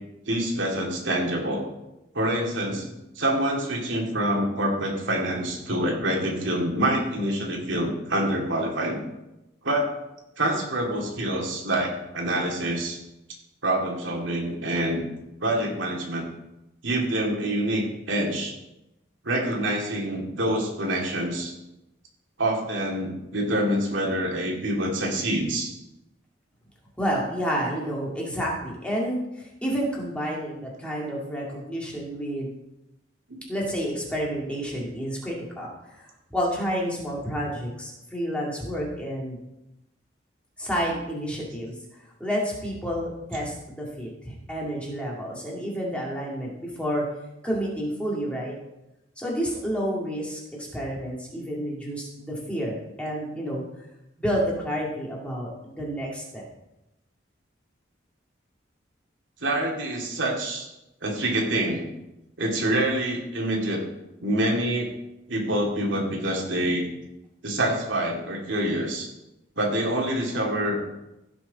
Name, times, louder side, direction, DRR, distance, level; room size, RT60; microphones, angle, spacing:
voice 1, 0.3-1.6 2.1-2.9 3.2-9.0 9.6-9.9 10.4-13.0 13.6-15.0 15.4-16.2 16.8-18.5 19.2-21.5 22.4-25.7 33.3-33.4 59.4-60.7 61.0-61.9 62.4-63.8 64.2-64.9 65.3-66.9 67.4-69.1 69.6-70.8, right 1 dB, 80° right, -1 dB, 2.5 m, -26 dB
voice 2, 27.0-32.5 33.5-39.4 40.6-41.7 42.2-47.0 47.4-48.5 49.2-53.6 54.2-56.4, equal, 5° left, -4 dB, 2.2 m, -30 dB
16.0 x 6.3 x 4.2 m, 0.91 s
head